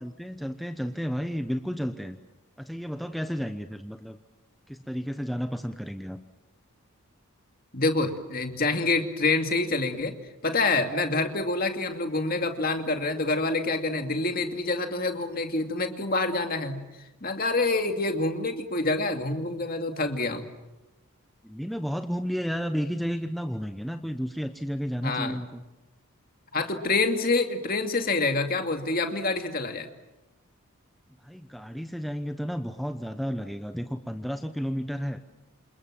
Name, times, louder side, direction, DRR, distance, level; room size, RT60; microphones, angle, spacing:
voice 1, 0.0-2.2 2.6-4.2 4.7-6.2 21.4-25.6 31.2-35.2, equal, ahead, 7 dB, 0.9 m, -32 dB
voice 2, 7.7-10.1 10.4-16.8 17.2-20.5 25.0-25.4 26.5-29.9, left 3 dB, 40° left, 5 dB, 2.5 m, -27 dB
28.5 x 27.5 x 7.5 m, 1.0 s
head